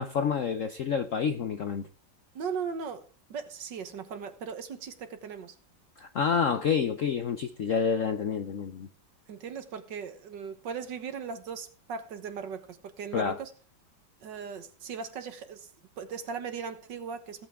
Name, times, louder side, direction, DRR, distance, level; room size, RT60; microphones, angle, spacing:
voice 1, 0.0-1.9 6.0-8.9 13.1-13.4, left 6 dB, 65° left, 0.8 m, -28 dB
voice 2, 2.3-3.0 3.3-5.6 9.3-13.5 14.2-15.7 16.0-17.5, right 6 dB, 65° right, 1.8 m, -38 dB
17.0 x 8.3 x 3.6 m
omnidirectional pair, 2.2 m